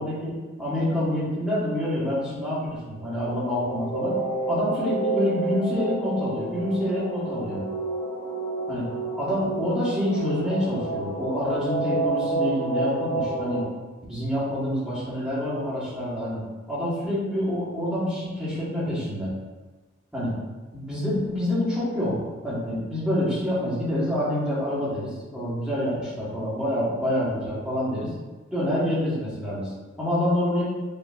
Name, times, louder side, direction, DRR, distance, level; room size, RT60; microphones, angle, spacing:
voice 1, 0.0-4.2 4.5-7.6 8.7-8.9 9.2-13.7 14.1-16.4 16.7-19.3 20.1-20.3 20.7-28.1 28.5-30.6, left 1 dB, 5° right, -10 dB, 1.4 m, -27 dB
sound 1, 3.0-13.6, right 2 dB, 65° left, 1.4 m, -29 dB
5.1 x 3.2 x 2.6 m, 1.3 s
head